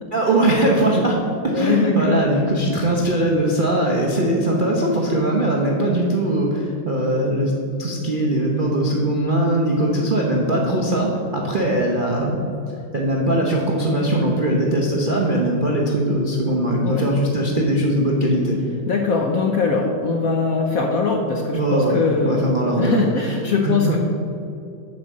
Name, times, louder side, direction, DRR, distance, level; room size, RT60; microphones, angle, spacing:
voice 1, 0.1-7.5 7.8-12.4 12.9-18.6 21.5-23.1 23.6-24.0, right 1 dB, 50° right, -2 dB, 0.6 m, -20 dB
voice 2, 1.5-2.2 16.8-17.1 18.9-22.5 22.8-24.0, left 4 dB, 65° left, 2 dB, 0.9 m, -21 dB
7.8 x 5.2 x 7.4 m, 2.7 s
omnidirectional pair, 2.2 m